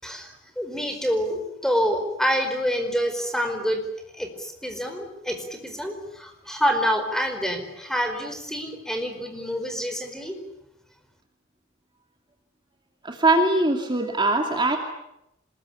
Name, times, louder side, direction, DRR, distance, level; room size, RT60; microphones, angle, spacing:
voice 1, 0.0-3.9 4.1-10.4, equal, 5° left, 6 dB, 4.8 m, -27 dB
voice 2, 13.0-14.8, right 2 dB, 25° right, 3 dB, 2.6 m, -21 dB
26.0 x 21.5 x 10.0 m, 0.85 s
head